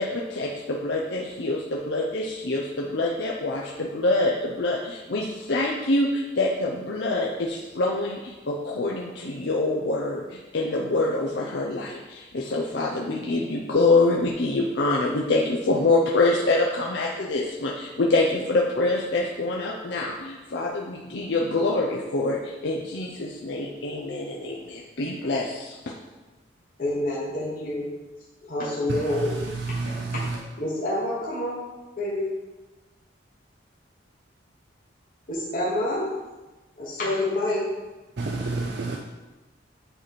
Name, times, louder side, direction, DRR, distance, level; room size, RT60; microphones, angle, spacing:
voice 1, 0.0-25.8, left 2 dB, 65° left, 0.6 m, -25 dB
voice 2, 26.8-27.8 28.4-29.3 29.7-31.6 32.0-32.3 35.3-36.1 36.8-37.7, left 1 dB, 45° left, 1.3 m, -28 dB
voice 3, 29.7-30.4 38.2-39.0, right 3 dB, 60° right, 0.5 m, -29 dB
8.8 x 3.1 x 4.2 m
head